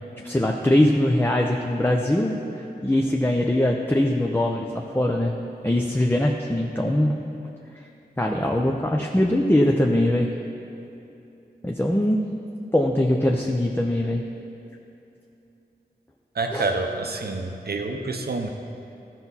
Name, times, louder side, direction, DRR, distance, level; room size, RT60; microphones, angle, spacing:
voice 1, 0.2-2.4 2.8-4.7 4.9-5.3 5.6-7.1 8.2-10.3 11.6-12.2 12.7-14.2 16.5-16.7, left 1 dB, 10° left, 0 dB, 0.6 m, -21 dB
voice 2, 16.3-18.5, right 3 dB, 65° right, 4 dB, 0.8 m, -27 dB
13.5 x 5.8 x 4.1 m, 2.8 s
wide cardioid pair, 45°, 17 cm